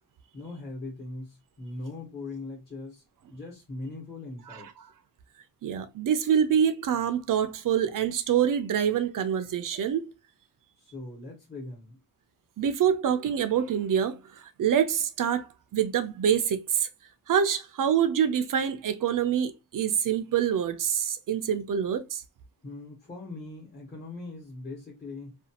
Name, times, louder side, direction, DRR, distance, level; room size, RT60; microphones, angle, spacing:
voice 1, 0.3-3.0 3.3-4.7 10.9-12.0 22.6-25.4, left 2 dB, 25° left, 1.1 m, -40 dB
voice 2, 5.6-10.0 12.6-14.2 14.6-15.5 15.7-16.9 17.3-22.2, right 8 dB, 55° right, 0.5 m, -26 dB
2.5 x 2.3 x 2.8 m
wide cardioid pair, 130°, 38 cm